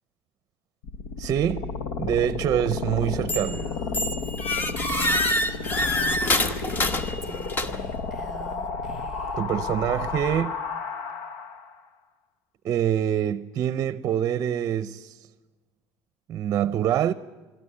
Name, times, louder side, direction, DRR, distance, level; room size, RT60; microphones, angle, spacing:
sound 1, 0.8-11.8, left 4 dB, 85° left, 1.3 m, -32 dB
voice 1, 1.2-1.7 2.0-3.7 9.4-10.6 12.6-15.3 16.3-17.1, right 10 dB, 40° right, 0.6 m, -25 dB
Female speech woman speaking, 3.0-6.3 7.2-9.4, right 2 dB, ahead, 1.4 m, -45 dB
sound 2, 3.3-3.6 3.9-8.0, left 1 dB, 25° left, 1.3 m, -26 dB
21.5 x 13.5 x 9.9 m
cardioid pair, 130°, 7 cm